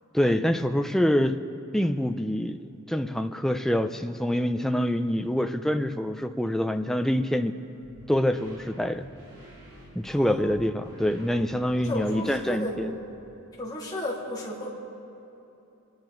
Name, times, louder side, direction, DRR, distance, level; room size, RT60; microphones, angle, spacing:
voice 1, 0.1-1.4 1.7-7.6 8.1-9.1 9.9-12.9, equal, ahead, 7 dB, 0.4 m, -26 dB
sound 1, 7.8-13.1, equal, 90° right, 4.0 m, -49 dB
voice 2, 10.1-10.4 11.7-12.9 13.6-14.7, left 1 dB, 20° left, -5 dB, 2.5 m, -34 dB
27.5 x 10.5 x 3.9 m, 2.9 s
head